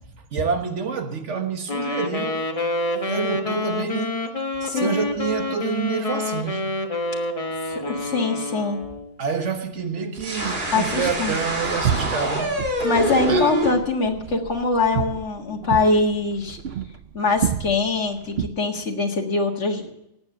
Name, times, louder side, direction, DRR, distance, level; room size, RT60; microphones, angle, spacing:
voice 1, 0.3-2.5 3.1-4.2 4.7-6.7 9.2-12.6 13.3-13.5, right 6 dB, 80° right, 1.6 m, -27 dB
Wind instrument woodwind instrument, 1.7-9.1, left 2 dB, 30° left, 1.2 m, -27 dB
voice 2, 4.6-5.0 7.7-8.8 10.7-11.4 12.8-16.6 17.1-19.9, left 3 dB, 75° left, 2.0 m, -23 dB
sound 1, 10.1-13.7, equal, 45° right, 2.5 m, -25 dB
sound 2, 10.4-18.5, right 9 dB, 65° right, 0.8 m, -31 dB
18.5 x 8.0 x 7.0 m
omnidirectional pair, 1.2 m